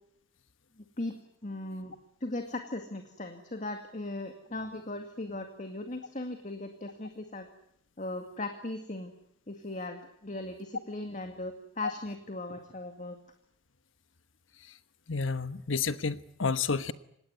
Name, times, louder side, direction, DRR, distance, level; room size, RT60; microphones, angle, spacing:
voice 1, 0.8-1.2 1.4-1.9 2.2-7.5 8.0-9.1 9.5-13.2, left 2 dB, 40° left, 6 dB, 2.2 m, -38 dB
voice 2, 15.1-16.9, left 4 dB, 90° left, 12 dB, 1.3 m, -30 dB
26.0 x 19.5 x 9.6 m, 0.72 s
head